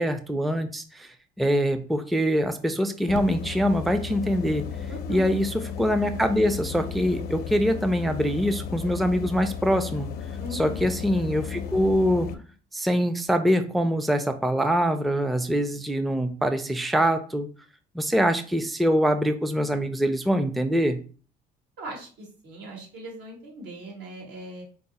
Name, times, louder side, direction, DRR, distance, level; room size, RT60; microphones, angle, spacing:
voice 1, 0.0-4.6 5.1-10.1 10.5-12.3 12.7-17.5 17.9-21.0, equal, ahead, 9 dB, 0.3 m, -24 dB
sound 1, 3.1-12.3, left 7 dB, 65° left, 0.5 m, -34 dB
voice 2, 4.9-5.3 10.4-10.9 21.8-24.6, equal, 85° right, 0 dB, 1.7 m, -39 dB
4.7 x 2.0 x 4.0 m, 0.39 s
cardioid pair, 110°, 17 cm